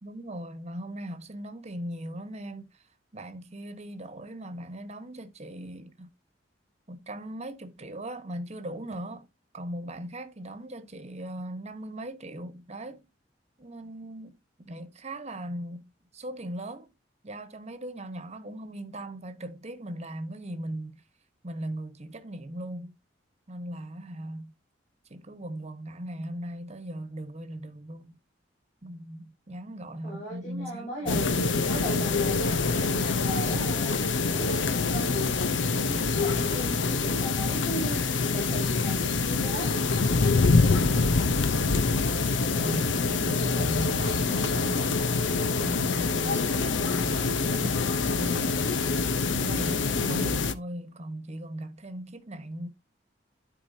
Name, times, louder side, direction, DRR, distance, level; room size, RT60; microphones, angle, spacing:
voice 1, 0.0-2.7 3.1-6.1 6.9-9.3 9.5-13.1 13.6-15.8 16.1-16.9 17.2-21.0 21.4-22.9 23.5-24.5 25.1-28.1 28.8-31.4 40.8-42.2 42.4-48.9 49.3-52.7, right 1 dB, 35° right, 1.2 m, -39 dB
voice 2, 30.0-31.3 31.6-39.7, right 1 dB, 45° left, 5.6 m, -38 dB
sound 1, 31.1-50.5, left 4 dB, 80° left, 0.7 m, -25 dB
12.5 x 4.6 x 2.7 m
head